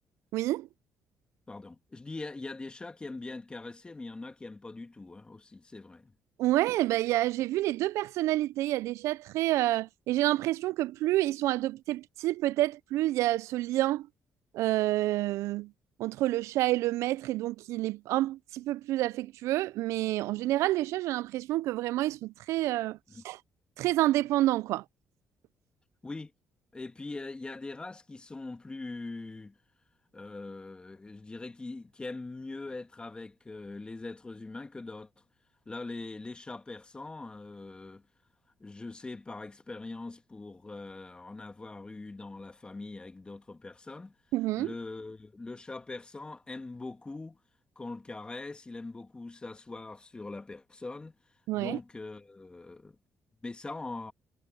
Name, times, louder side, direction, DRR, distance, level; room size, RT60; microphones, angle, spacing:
voice 1, 0.3-0.7 6.4-14.1 14.5-15.7 16.0-23.0 23.2-23.4 23.8-24.8 44.3-44.7 51.5-51.8, right 16 dB, 85° right, 0.3 m, -28 dB
voice 2, 1.5-6.1 23.1-23.2 26.0-26.3 26.7-29.6 30.1-35.1 35.7-38.0 38.6-44.1 44.6-47.4 47.8-51.1 51.5-53.0 53.4-54.1, left 3 dB, 20° left, 1.9 m, -42 dB
cardioid pair, 95°, 5 cm